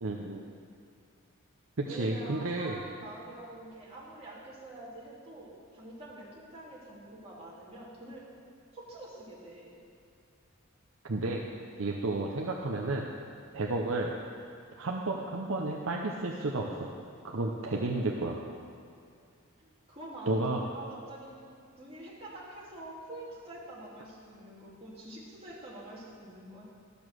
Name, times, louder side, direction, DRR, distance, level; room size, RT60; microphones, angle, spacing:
voice 1, 0.0-0.4 1.8-2.8 11.0-11.4 11.8-13.1 13.5-14.1 14.8-16.9 17.2-18.4 20.3-20.6, right 2 dB, 70° right, -1 dB, 0.8 m, -32 dB
voice 2, 1.9-8.2 8.7-9.8 19.6-21.4 21.8-26.6, right 1 dB, 30° right, -7 dB, 2.6 m, -46 dB
12.5 x 7.0 x 6.3 m, 2.4 s
head